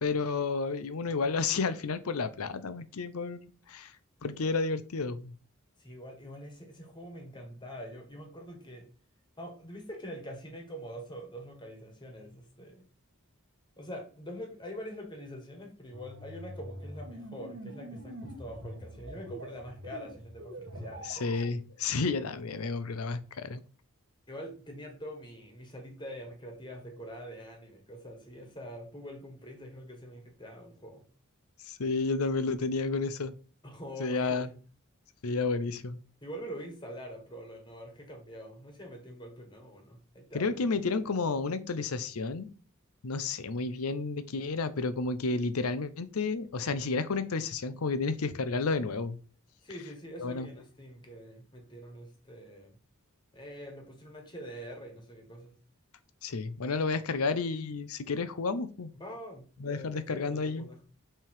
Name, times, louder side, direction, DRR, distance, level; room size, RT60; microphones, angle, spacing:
voice 1, 0.0-3.9 4.2-5.3 21.0-23.6 31.6-33.3 34.0-34.5 35.2-36.0 40.3-42.5 43.0-49.2 50.2-50.5 56.2-58.9 59.6-60.7, left 4 dB, 85° left, 0.7 m, -31 dB
voice 2, 5.8-8.9 9.4-12.8 13.8-21.5 24.3-31.0 33.6-34.6 36.2-40.8 49.6-52.8 53.3-55.5 58.9-60.8, equal, 20° left, 1.7 m, -44 dB
sound 1, 15.9-21.5, equal, 60° right, 1.5 m, -44 dB
5.9 x 3.5 x 4.7 m
head